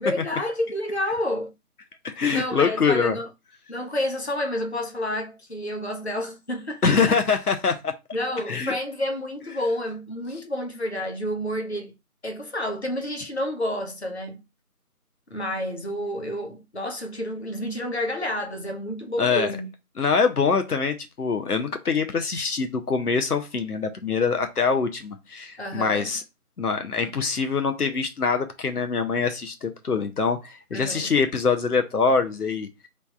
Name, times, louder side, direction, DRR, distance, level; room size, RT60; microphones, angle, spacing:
voice 1, 0.0-1.5 2.3-3.3 3.7-7.2 8.1-11.9 12.2-14.4 15.3-19.7 25.6-26.1 30.7-31.1, left 1 dB, 45° left, 0.9 m, -29 dB
voice 2, 2.0-3.2 6.8-7.9 8.5-8.7 19.2-19.5 20.0-26.2 26.6-32.9, left 5 dB, 80° left, 0.8 m, -24 dB
3.2 x 2.3 x 4.1 m
figure-of-eight pair, 175°, 45 cm